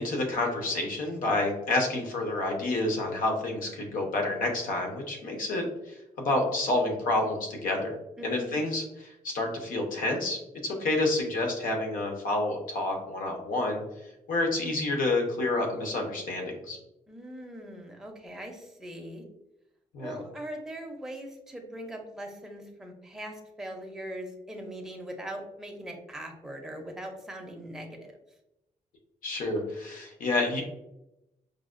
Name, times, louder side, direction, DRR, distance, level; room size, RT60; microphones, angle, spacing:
voice 1, 0.0-5.7 6.2-8.0 8.2-13.8 14.3-16.8 19.9-20.1 29.2-30.6, left 2 dB, 75° left, 2 dB, 0.8 m, -29 dB
voice 2, 8.2-8.6 17.1-19.2 20.0-28.2, right 1 dB, 5° right, 1 dB, 0.4 m, -41 dB
4.8 x 2.1 x 2.4 m, 0.88 s
wide cardioid pair, 170°, 14 cm